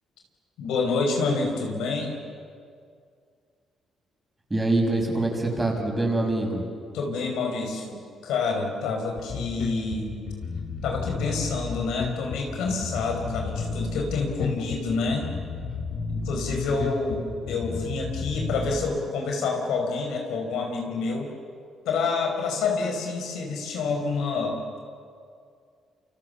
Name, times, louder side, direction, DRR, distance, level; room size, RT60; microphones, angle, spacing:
voice 1, 0.6-2.1 6.9-8.0 8.2-10.1 10.8-15.3 16.1-21.3 21.9-24.6, left 4 dB, 85° left, 2 dB, 5.4 m, -28 dB
voice 2, 4.5-6.6, right 2 dB, 15° right, 1 dB, 6.3 m, -24 dB
Bass guitar, 9.2-18.8, left 4 dB, 65° left, 3.5 m, -33 dB
28.0 x 27.0 x 7.1 m, 2.2 s
cardioid pair, 90°, 0 cm